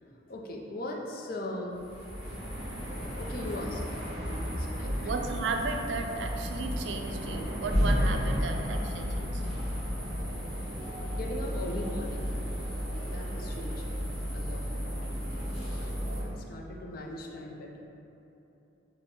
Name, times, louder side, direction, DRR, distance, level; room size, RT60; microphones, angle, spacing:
voice 1, 0.3-1.8 2.7-5.3 11.1-12.3 13.0-14.0 14.3-14.6 15.6-15.9 16.2-17.9, left 1 dB, 55° left, 0 dB, 0.5 m, -39 dB
sound 1, 1.7-16.2, equal, 5° left, 1.5 m, -33 dB
voice 2, 4.8-9.6 16.0-16.3, right 3 dB, 70° right, 3 dB, 0.3 m, -35 dB
4.8 x 2.1 x 3.7 m, 2.9 s
head